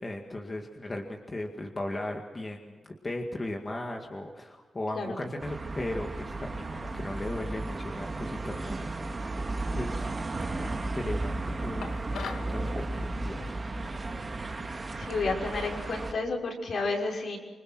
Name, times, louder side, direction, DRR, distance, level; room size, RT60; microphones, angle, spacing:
voice 1, 0.0-2.7 3.0-10.2 10.5-11.9 12.2-13.6 13.9-14.2, left 1 dB, 25° left, 2 dB, 2.1 m, -37 dB
sound 1, 5.4-16.1, right 2 dB, 25° right, 2.1 m, -34 dB
sound 2, 11.8-12.5, left 6 dB, 85° left, 2.1 m, -39 dB
voice 2, 14.9-17.4, left 3 dB, 60° left, 0 dB, 6.0 m, -31 dB
27.0 x 25.0 x 6.2 m, 1.4 s
wide cardioid pair, 125°, 0 cm